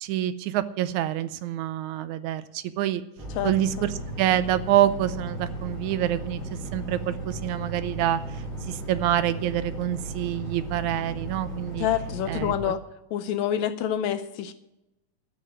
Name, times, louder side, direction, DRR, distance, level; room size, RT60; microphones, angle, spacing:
voice 1, 0.0-3.0 3.4-11.9 12.3-12.7, right 12 dB, 80° right, 14 dB, 1.9 m, -27 dB
sound 1, 3.2-12.6, right 1 dB, 40° left, 3.9 m, -35 dB
voice 2, 3.4-3.9 11.8-12.8 13.1-14.5, left 10 dB, 75° left, 11 dB, 1.8 m, -27 dB
12.5 x 6.6 x 9.7 m, 0.92 s
omnidirectional pair, 3.6 m